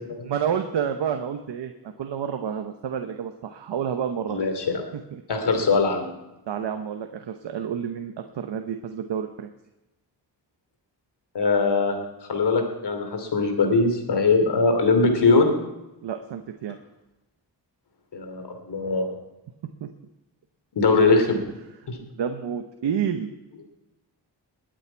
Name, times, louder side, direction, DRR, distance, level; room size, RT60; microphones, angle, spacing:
voice 1, 0.2-1.7 2.0-4.4 5.1-5.2 6.5-9.5 16.0-16.8 19.8-19.9 22.1-23.3, right 8 dB, 75° right, 6 dB, 1.0 m, -29 dB
voice 2, 4.3-4.8 5.3-6.1 11.3-12.0 12.3-15.5 18.1-19.1 20.8-21.4 21.9-22.0, left 3 dB, 65° left, 5 dB, 2.9 m, -21 dB
20.5 x 8.9 x 4.6 m, 0.96 s
cardioid pair, 75°, 43 cm